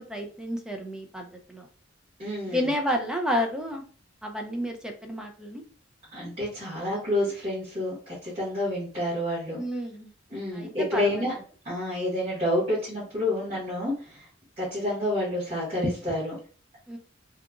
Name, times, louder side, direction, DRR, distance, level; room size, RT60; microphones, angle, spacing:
voice 1, 0.0-1.7 2.5-3.8 4.2-5.6 9.6-10.1 10.5-11.3 16.9-17.0, equal, 5° right, 3 dB, 0.4 m, -31 dB
voice 2, 2.2-2.7 6.1-9.6 10.3-11.3 11.6-14.3 14.6-16.4, left 1 dB, 30° right, -10 dB, 1.3 m, -29 dB
2.8 x 2.4 x 2.4 m, 0.41 s
head